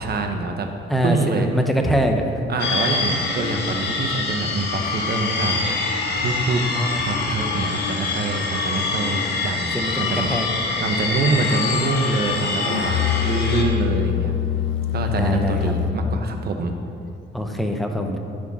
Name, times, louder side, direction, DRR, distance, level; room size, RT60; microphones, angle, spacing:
voice 1, 0.0-0.7 1.0-1.5 2.5-5.6 6.2-6.6 7.0-10.3 10.8-14.3 14.9-16.8, right 3 dB, 55° right, 4 dB, 1.1 m, -25 dB
voice 2, 0.9-2.2 6.8-7.0 7.4-7.7 9.7-10.5 15.1-15.7 17.3-18.2, equal, ahead, 3 dB, 0.9 m, -24 dB
sound 1, 2.6-13.6, left 3 dB, 55° left, 1.2 m, -25 dB
Musical instrument, 12.7-16.2, left 11 dB, 80° left, 0.5 m, -24 dB
14.0 x 5.0 x 4.2 m, 2.5 s
cardioid pair, 90°, 20 cm